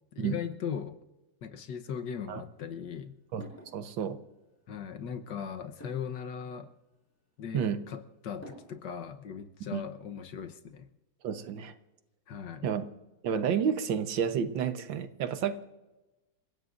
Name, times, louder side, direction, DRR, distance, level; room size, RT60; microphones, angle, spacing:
voice 1, 0.1-1.0 1.4-3.1 4.7-6.7 7.4-10.9 12.3-12.7, left 7 dB, 65° left, 7 dB, 1.6 m, -38 dB
sound 1, 1.8-9.2, equal, 5° left, 6.8 m, -56 dB
voice 2, 3.7-4.2 7.5-7.8 9.7-9.8 11.2-11.7 12.6-12.8 13.2-15.6, right 7 dB, 75° right, 9 dB, 1.7 m, -30 dB
28.0 x 16.0 x 2.6 m, 1.1 s
omnidirectional pair, 2.1 m